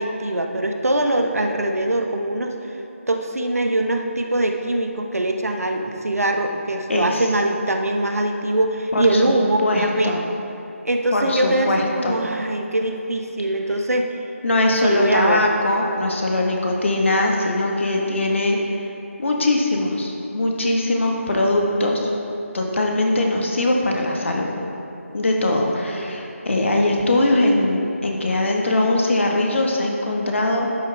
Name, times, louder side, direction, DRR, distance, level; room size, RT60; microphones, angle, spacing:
voice 1, 0.0-2.5 3.1-10.2 10.8-14.1 14.8-15.4 25.9-26.2, right 1 dB, 85° right, 3 dB, 1.2 m, -22 dB
voice 2, 6.9-7.2 8.9-9.3 9.6-10.2 11.1-12.2 14.4-18.6 19.2-22.1 22.5-24.5 25.1-30.7, left 2 dB, 55° left, 0 dB, 1.6 m, -21 dB
11.5 x 9.1 x 3.5 m, 2.9 s
figure-of-eight pair, 165°, 8 cm